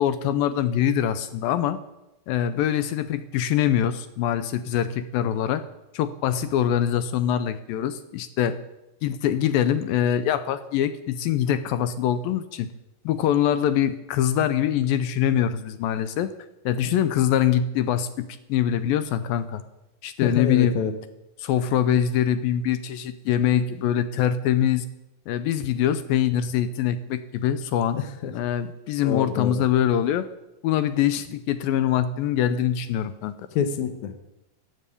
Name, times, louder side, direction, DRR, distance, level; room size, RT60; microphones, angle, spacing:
voice 1, 0.0-1.8 2.3-5.6 5.9-8.6 9.0-12.7 13.1-16.3 16.7-19.6 20.0-20.7 21.4-24.9 25.3-28.0 28.3-30.3 30.6-33.3, left 10 dB, 85° left, 13 dB, 2.5 m, -23 dB
voice 2, 20.2-20.9 28.0-28.3 29.0-29.6 33.5-34.1, left 7 dB, 60° left, 9 dB, 2.4 m, -27 dB
14.0 x 9.2 x 10.0 m, 0.94 s
omnidirectional pair, 4.1 m